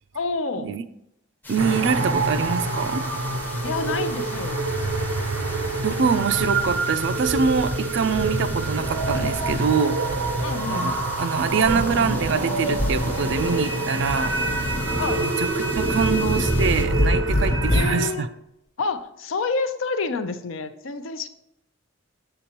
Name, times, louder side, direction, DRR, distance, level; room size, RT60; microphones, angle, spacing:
voice 1, 0.1-0.7 3.6-4.6 10.4-10.9 15.0-15.3 17.7-18.3 18.8-21.3, left 4 dB, 75° left, 0.6 m, -28 dB
sound 1, 1.4-16.8, left 2 dB, 10° left, 0.6 m, -40 dB
voice 2, 1.5-3.0 5.8-10.0 10.7-14.7 15.1-18.3, right 5 dB, 60° right, 0.4 m, -24 dB
sound 2, 1.6-18.1, right 2 dB, 85° right, 0.8 m, -26 dB
sound 3, 4.8-5.9 6.3-6.7 7.2-7.8 8.1-9.7 10.0-10.5 11.6-12.4 12.7-13.7 14.0-15.2 15.6-18.0, equal, 45° left, 1.1 m, -27 dB
7.3 x 6.8 x 2.9 m
head